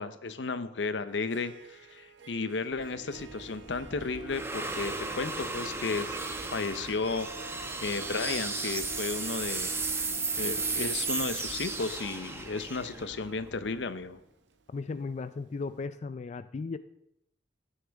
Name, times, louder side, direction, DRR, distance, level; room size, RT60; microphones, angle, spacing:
voice 1, 0.0-6.2 6.5-9.8 10.4-14.2, left 4 dB, 85° left, 12 dB, 0.7 m, -34 dB
Harp, 1.1-15.1, right 6 dB, 80° right, 0.7 m, -48 dB
sound 1, 2.8-14.0, right 3 dB, 15° right, 0.8 m, -35 dB
voice 2, 14.7-16.8, left 4 dB, 40° left, 12 dB, 0.3 m, -36 dB
14.0 x 9.8 x 3.5 m, 0.79 s
head